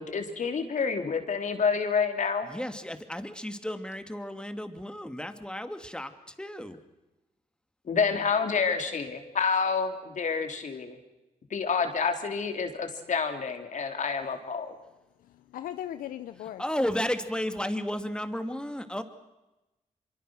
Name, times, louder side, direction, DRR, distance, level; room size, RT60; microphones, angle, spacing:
voice 1, 0.0-2.5 7.9-11.0 11.5-14.7, left 5 dB, 65° left, 5 dB, 3.5 m, -28 dB
voice 2, 2.4-6.8 16.6-19.0, left 1 dB, 5° left, 8 dB, 2.6 m, -33 dB
voice 3, 15.5-16.6, left 11 dB, 90° left, 11 dB, 0.7 m, -37 dB
25.5 x 23.5 x 6.5 m, 1.0 s
cardioid pair, 55°, 14 cm